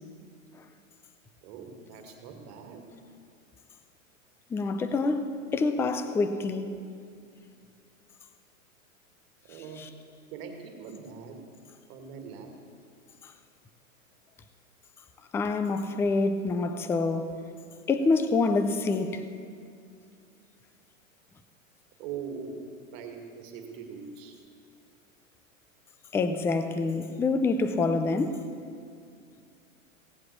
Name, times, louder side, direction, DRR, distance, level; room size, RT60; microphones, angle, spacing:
voice 1, 1.4-2.8 9.5-9.9 10.3-11.5 11.9-12.5 22.0-24.4, right 6 dB, 45° right, 2.2 m, -42 dB
voice 2, 4.5-6.7 15.3-17.3 17.9-19.2 26.1-28.4, left 3 dB, 5° left, 0.4 m, -26 dB
17.0 x 7.6 x 8.4 m
hypercardioid pair, 115°, 41 cm